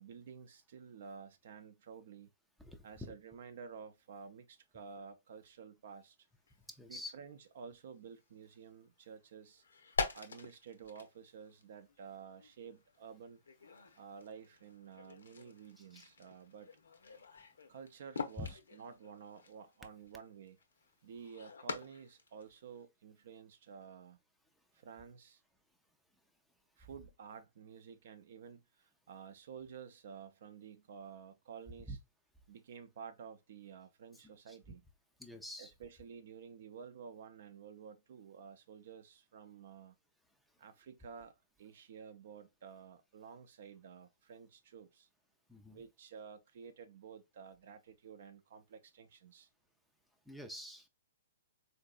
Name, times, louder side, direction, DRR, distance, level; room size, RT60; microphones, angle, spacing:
voice 1, 0.0-2.3 2.8-6.2 6.9-9.6 10.1-13.4 14.0-16.7 17.7-20.6 21.0-24.2 24.7-25.4 26.8-32.0 32.5-34.8 35.6-39.9 40.6-41.3 41.6-45.1 45.7-49.5, right 6 dB, 55° right, 0.5 m, -52 dB
voice 2, 2.6-3.1 6.7-7.1 15.8-16.1 18.4-18.5 31.9-32.0 34.1-34.6 35.2-35.7 45.5-45.8 50.3-50.9, left 1 dB, 5° left, 0.4 m, -47 dB
sound 1, 6.5-6.7 7.0-7.1 8.1-8.2 8.5-8.8 9.5-22.8, left 4 dB, 75° left, 0.6 m, -45 dB
3.9 x 2.5 x 2.3 m
figure-of-eight pair, 120°, 0 cm